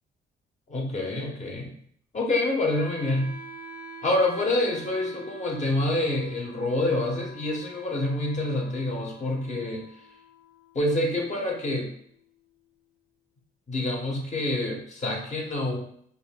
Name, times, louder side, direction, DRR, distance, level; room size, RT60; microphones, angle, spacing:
voice 1, 0.7-1.7 2.1-3.3 4.0-9.9 10.7-11.9 13.7-15.8, left 2 dB, 35° left, 0 dB, 1.0 m, -27 dB
Wind instrument woodwind instrument, 2.7-12.7, right 2 dB, 10° right, 0.6 m, -47 dB
5.1 x 2.7 x 2.2 m, 0.64 s
cardioid pair, 90°, 20 cm